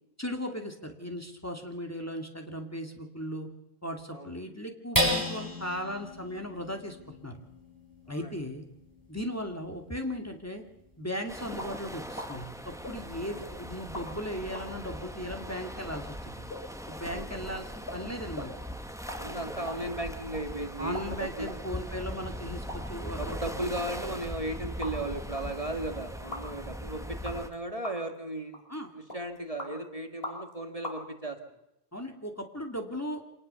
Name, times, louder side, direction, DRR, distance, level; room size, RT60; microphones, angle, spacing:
voice 1, 0.2-3.5 3.8-7.4 8.1-8.6 9.1-10.6 11.0-16.5 16.9-18.5 20.8-23.5 28.7-28.9 31.9-33.2, equal, 15° left, 3 dB, 2.5 m, -37 dB
sound 1, 4.9-11.6 12.1-12.2 12.6-13.1, equal, 20° right, 5.7 m, -35 dB
sound 2, 11.3-27.5, equal, 5° right, 1.7 m, -40 dB
sound 3, 11.6-11.7 12.2-12.3 12.8-13.5 13.9-14.1 14.5-14.7 15.3-15.4 15.9-16.0 16.5-16.6 16.9-17.0 17.3-17.4 17.9-18.0 18.4-18.5 18.9-19.2 19.5-20.4 20.9-21.6 22.0-22.1 22.7-22.8 23.3-25.1 25.4-25.5 26.3-26.4 27.2-27.5 27.8-28.2 28.5-28.7 29.1-29.7 30.2-30.5 30.8-31.0, left 1 dB, 65° left, 5.4 m, -41 dB
voice 2, 19.2-21.5 23.0-28.6 28.9-31.4, right 1 dB, 35° right, 5 dB, 2.0 m, -36 dB
26.0 x 19.5 x 7.0 m, 0.88 s
omnidirectional pair, 1.1 m